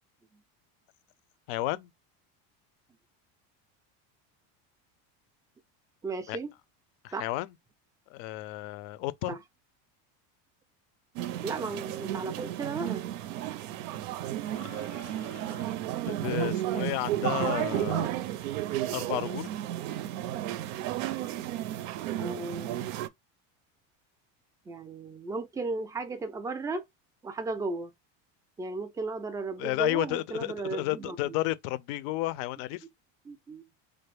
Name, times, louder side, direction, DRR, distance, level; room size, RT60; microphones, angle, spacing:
voice 1, 1.5-1.9 6.3-6.4 7.0-7.5 8.1-9.3 14.5-15.6 16.1-18.1 18.9-19.5 29.6-32.8, left 18 dB, 70° left, 0.5 m, -32 dB
voice 2, 6.0-6.5 7.1-7.3 9.3-9.4 11.4-13.1 15.2-15.3 22.1-22.9 24.7-26.8 27.2-27.9 28.6-31.4 33.3-33.6, right 3 dB, 10° right, 0.3 m, -35 dB
sound 1, 11.2-23.1, right 13 dB, 85° right, 0.5 m, -33 dB
3.2 x 2.0 x 3.2 m
supercardioid pair, 125°, 39 cm